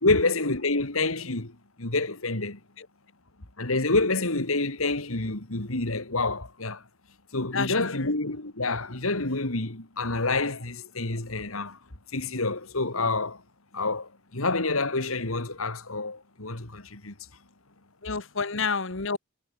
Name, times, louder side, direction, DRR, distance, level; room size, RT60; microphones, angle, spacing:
voice 1, 0.0-2.6 3.6-6.8 7.3-11.8 12.1-13.4 13.7-17.1, left 3 dB, 90° left, 3.1 m, -28 dB
voice 2, 7.5-8.1 18.0-19.2, left 5 dB, 65° left, 1.6 m, -29 dB
head